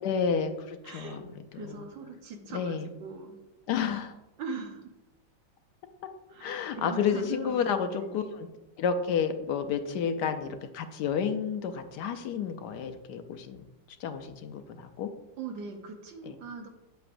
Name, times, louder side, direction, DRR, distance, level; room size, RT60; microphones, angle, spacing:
voice 1, 0.0-1.2 1.6-1.7 2.5-2.9 3.7-4.1 6.4-8.2 8.8-13.6 14.0-15.1, left 7 dB, 70° left, 8 dB, 1.1 m, -30 dB
voice 2, 0.8-1.2 1.5-3.4 4.4-5.0 6.3-8.1 15.4-16.7, right 4 dB, 75° right, 4 dB, 1.7 m, -41 dB
8.4 x 7.8 x 2.6 m, 0.98 s
omnidirectional pair, 2.0 m